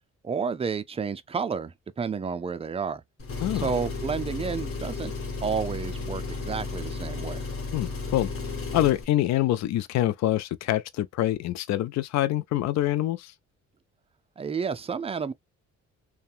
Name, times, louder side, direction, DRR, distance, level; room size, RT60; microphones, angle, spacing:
voice 1, 0.2-3.0 3.5-5.1 5.4-7.4 14.4-15.3, right 6 dB, 20° right, 0.4 m, -31 dB
Engine, 3.2-9.0, left 3 dB, 50° left, 1.1 m, -33 dB
voice 2, 3.4-3.7 7.7-8.3 8.7-13.3, left 14 dB, 65° left, 0.4 m, -25 dB
2.8 x 2.2 x 2.4 m
cardioid pair, 90°, 30 cm